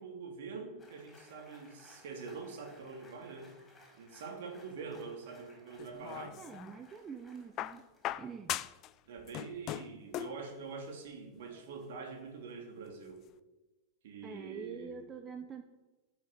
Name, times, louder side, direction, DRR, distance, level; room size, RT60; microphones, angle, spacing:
voice 1, 0.0-3.6 3.9-6.4 9.1-13.2 14.0-15.1, right 5 dB, 55° right, 3 dB, 3.0 m, -45 dB
sound 1, 0.8-8.4, left 2 dB, 15° left, 5.2 m, -61 dB
sound 2, 5.8-6.8 7.6-8.9 9.2-10.4 11.5-11.6, left 13 dB, 35° left, 0.5 m, -39 dB
voice 2, 6.4-7.9 8.2-8.6 14.2-15.6, right 6 dB, 20° right, 8 dB, 0.9 m, -45 dB
13.5 x 6.7 x 8.9 m, 1.1 s
figure-of-eight pair, 90°, 0 cm